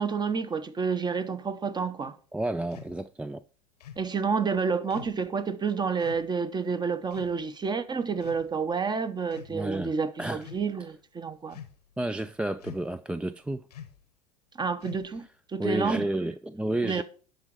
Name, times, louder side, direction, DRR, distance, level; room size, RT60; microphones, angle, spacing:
voice 1, 0.0-2.2 4.0-11.6 14.6-15.3 15.5-16.1 16.8-17.0, right 5 dB, 20° right, 0.9 m, -29 dB
voice 2, 2.3-3.4 9.5-9.9 10.2-10.4 12.0-13.6 15.6-17.0, right 1 dB, 5° right, 0.3 m, -31 dB
sound 1, 2.7-3.0 3.8-4.1 4.9-5.2 6.0-6.3 7.1-7.4 8.2-8.7 9.3-9.6 10.3-10.7 11.5-11.9 12.6-13.0 13.7-14.0 14.8-15.3, left 9 dB, 90° left, 1.0 m, -46 dB
11.0 x 4.0 x 6.0 m
hypercardioid pair, 85°, 20 cm